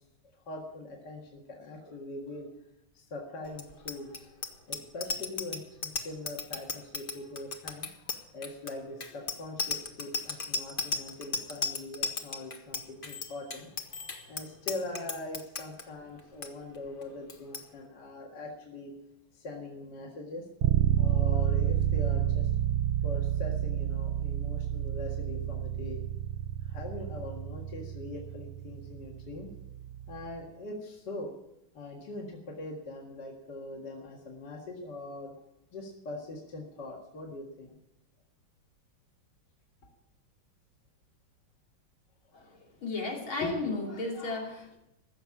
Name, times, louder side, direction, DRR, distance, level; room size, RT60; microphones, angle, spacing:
voice 1, 0.5-2.5 2.9-4.3 4.7-7.9 8.3-13.7 14.3-18.9 19.3-20.5 21.0-22.5 23.0-26.0 26.6-29.5 30.1-31.3 31.7-35.3 35.7-37.8, left 2 dB, 55° left, -1 dB, 2.5 m, -42 dB
Bicycle bell, 3.5-15.8 16.2-16.5 16.7-17.0 17.3-17.6, left 4 dB, 35° left, 0.9 m, -35 dB
sound 1, 20.6-30.3, right 11 dB, 75° right, 1.4 m, -30 dB
voice 2, 42.8-44.8, left 3 dB, 80° left, -1 dB, 3.7 m, -33 dB
15.0 x 7.0 x 8.8 m, 0.87 s
omnidirectional pair, 2.2 m